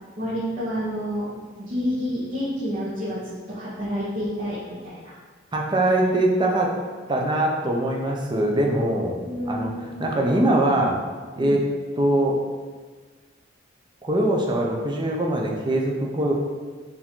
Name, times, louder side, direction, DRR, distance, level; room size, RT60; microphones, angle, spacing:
voice 1, 0.2-1.3 1.6-5.1 9.2-10.0 11.4-11.6, equal, 45° right, -9 dB, 0.9 m, -29 dB
voice 2, 5.5-6.7 7.1-9.2 9.5-9.7 10.0-11.0 11.4-11.6 12.0-12.4 14.0-16.3, right 1 dB, 25° right, -1 dB, 0.5 m, -22 dB
4.8 x 2.6 x 3.6 m, 1.4 s
head